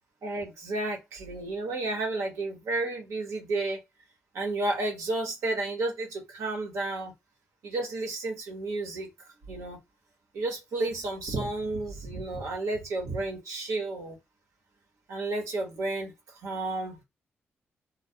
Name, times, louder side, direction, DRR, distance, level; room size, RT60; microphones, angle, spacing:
voice 1, 0.2-3.8 4.3-7.1 7.6-9.8 10.3-14.2 15.1-17.0, right 2 dB, 75° right, 1.0 m, -32 dB
2.2 x 2.2 x 2.7 m
supercardioid pair, 50°, 5 cm